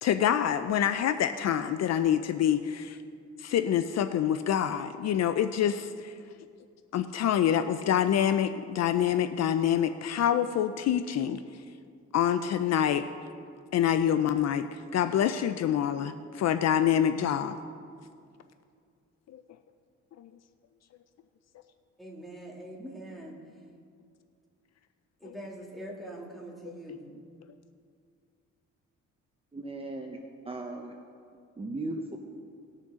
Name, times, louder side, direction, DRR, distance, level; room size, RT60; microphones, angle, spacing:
voice 1, 0.0-3.0 3.4-6.1 6.9-11.4 12.1-13.0 13.7-17.6 19.3-19.4 20.2-20.3 25.2-25.3 26.7-27.0, left 9 dB, 60° left, 10 dB, 0.5 m, -26 dB
voice 2, 22.0-23.4 25.2-27.0, right 1 dB, ahead, -3 dB, 2.6 m, -43 dB
voice 3, 29.5-30.9 31.6-32.2, right 2 dB, 20° right, 2 dB, 0.8 m, -37 dB
19.0 x 6.5 x 3.7 m, 2.2 s
cardioid pair, 90°, 30 cm